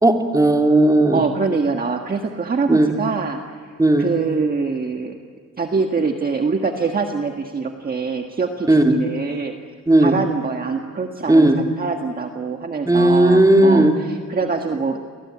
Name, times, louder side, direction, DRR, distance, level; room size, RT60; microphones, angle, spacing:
voice 1, 0.0-1.2 2.7-2.9 3.8-4.1 8.7-8.9 9.9-10.1 11.3-11.6 12.8-13.9, right 1 dB, 10° right, 3 dB, 3.2 m, -14 dB
voice 2, 1.1-3.7 4.0-5.1 5.6-9.5 10.0-15.0, right 4 dB, 30° right, 4 dB, 1.7 m, -24 dB
30.0 x 23.5 x 8.6 m, 2.1 s
cardioid pair, 135°, 29 cm